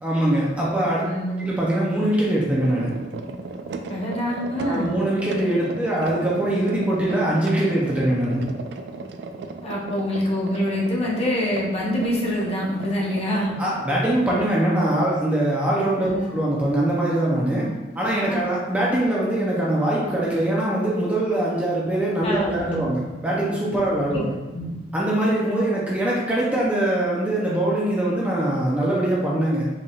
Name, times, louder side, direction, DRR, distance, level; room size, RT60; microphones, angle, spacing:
voice 1, 0.0-1.1 1.4-2.9 4.6-8.4 13.6-17.7 17.9-24.3 24.9-29.7, right 1 dB, 10° right, -6 dB, 0.5 m, -22 dB
voice 2, 1.0-1.5 3.9-4.9 9.6-13.6 16.0-16.3 18.2-18.5 22.2-23.0 23.8-24.2 24.5-24.8, equal, 35° left, -4 dB, 0.8 m, -26 dB
sound 1, 2.6-13.9, right 3 dB, 70° right, 0.3 m, -36 dB
4.0 x 3.4 x 2.4 m, 1.1 s
head